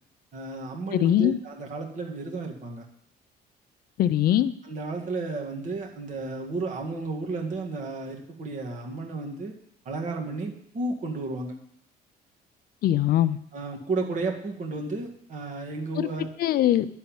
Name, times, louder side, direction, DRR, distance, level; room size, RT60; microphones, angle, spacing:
voice 1, 0.3-2.8 4.6-9.5 9.9-11.5 13.5-16.3, right 3 dB, 45° right, 1 dB, 1.8 m, -32 dB
voice 2, 0.9-1.4 4.0-4.5 12.8-13.4 16.0-16.1 16.4-16.9, left 12 dB, 60° left, 12 dB, 0.6 m, -21 dB
10.5 x 4.2 x 7.1 m, 0.69 s
cardioid pair, 110°, 17 cm